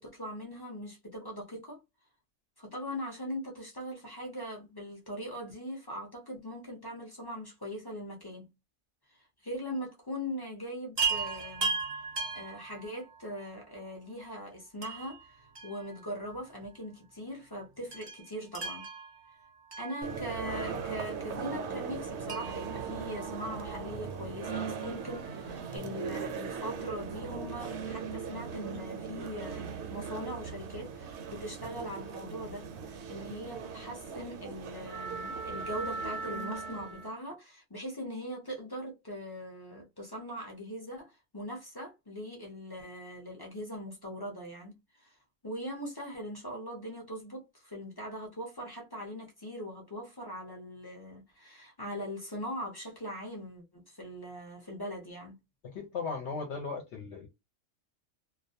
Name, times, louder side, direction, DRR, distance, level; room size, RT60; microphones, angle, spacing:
voice 1, 0.0-1.8 2.6-8.5 9.1-11.7 12.3-18.9 19.8-45.2 45.4-55.4, equal, 30° left, 0.4 m, -41 dB
Chime, 11.0-13.4 14.8-16.3 16.6-16.7 17.9-20.6 22.3-23.9 25.5-25.6 25.8-25.9, right 4 dB, 40° right, 0.4 m, -37 dB
sound 1, 20.0-37.2, right 5 dB, 65° right, 0.8 m, -39 dB
voice 2, 55.6-57.3, left 4 dB, 70° left, 0.8 m, -37 dB
2.3 x 2.1 x 2.6 m
omnidirectional pair, 1.3 m